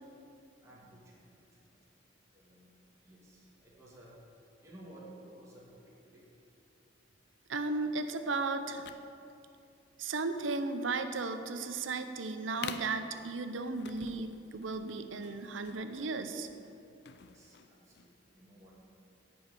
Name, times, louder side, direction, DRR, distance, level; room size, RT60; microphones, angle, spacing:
voice 1, 0.6-1.8 2.3-6.3 17.1-18.8, right 1 dB, 15° right, -6 dB, 2.2 m, -56 dB
voice 2, 7.5-8.9 10.0-16.5, right 3 dB, 85° right, 9 dB, 0.7 m, -35 dB
sound 1, 8.7-18.2, left 7 dB, 60° left, 0.5 m, -49 dB
10.5 x 5.5 x 8.3 m, 2.6 s
head